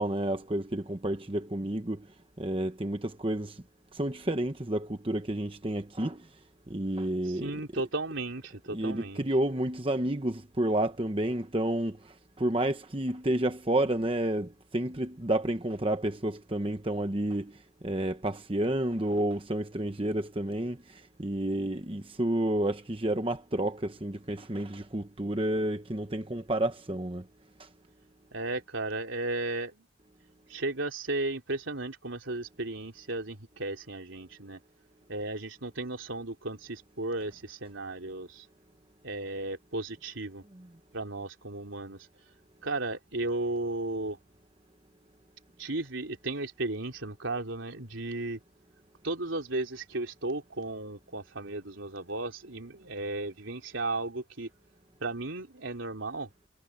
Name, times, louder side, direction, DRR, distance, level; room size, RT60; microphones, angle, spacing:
voice 1, 0.0-2.1 2.4-3.6 3.9-6.3 6.7-7.8 8.7-17.6 17.8-27.2 27.6-27.7 40.5-40.7, right 1 dB, 25° right, 1.0 m, -30 dB
voice 2, 7.4-9.2 28.3-29.8 30.5-34.6 35.1-38.4 39.0-40.4 40.9-42.0 42.6-44.2 45.6-48.4 49.0-54.5 55.0-56.3, right 2 dB, 75° right, 3.5 m, -35 dB
head